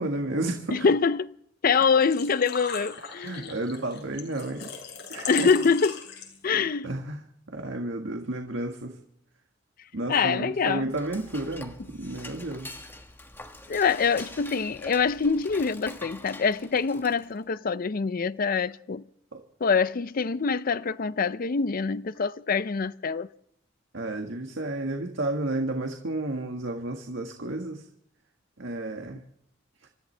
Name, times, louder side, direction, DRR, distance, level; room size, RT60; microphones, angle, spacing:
voice 1, 0.0-0.8 3.2-4.7 5.1-5.5 6.8-7.2 7.5-9.0 9.9-12.7 19.3-19.4 23.9-27.8 28.6-29.2, right 2 dB, 75° right, 1.7 m, -32 dB
voice 2, 0.7-1.4 1.6-3.5 5.3-6.0 6.4-6.9 10.1-10.8 13.7-19.0 19.6-23.3, left 5 dB, 50° left, 0.5 m, -25 dB
Engine / Trickle dribble / Fill (with liquid), 1.7-6.6, left 6 dB, 65° left, 5.4 m, -39 dB
Dishes pots and pans / Cutlery silverware, 10.6-17.4, left 2 dB, 10° left, 1.5 m, -45 dB
27.5 x 14.5 x 3.4 m
head